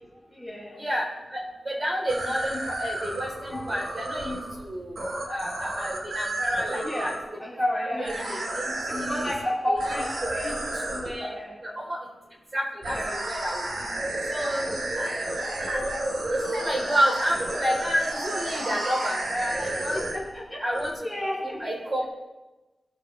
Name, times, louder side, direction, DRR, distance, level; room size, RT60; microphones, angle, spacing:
voice 1, 0.3-0.8 3.5-3.7 6.8-7.1 7.4-8.3 8.9-10.5 11.2-11.5 12.9-13.2 19.9-20.6 21.0-21.7, left 1 dB, 10° left, -6 dB, 4.0 m, -31 dB
voice 2, 1.7-4.9 5.3-7.1 7.9-9.3 9.7-9.8 10.4-10.5 10.9-11.3 11.6-12.0 12.5-13.6 14.3-14.7 15.0-15.1 15.6-15.8 16.3-20.0 20.6-20.9 21.4-22.1, equal, 35° right, -4 dB, 3.6 m, -29 dB
sound 1, 2.1-7.2 8.0-9.4 9.8-11.1 12.8-20.4 20.7-20.9, right 1 dB, 75° right, 3.9 m, -32 dB
19.0 x 7.7 x 3.3 m, 1.1 s
wide cardioid pair, 75°, 0 cm